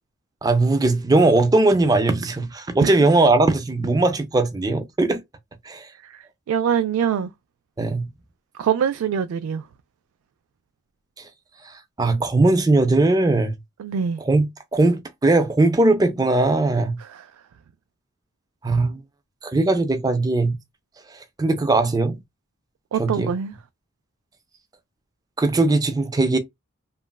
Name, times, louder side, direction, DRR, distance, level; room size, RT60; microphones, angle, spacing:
voice 1, 0.4-5.2 5.6-5.9 7.8-8.1 11.6-13.6 14.3-17.0 18.6-19.0 19.4-20.6 21.1-22.2 23.0-23.3 25.4-26.4, right 2 dB, 20° right, 0.4 m, -19 dB
voice 2, 6.0-7.3 8.6-9.6 13.8-14.2 17.0-17.2 22.9-23.5, right 8 dB, 90° right, 0.3 m, -24 dB
2.9 x 2.4 x 2.2 m
head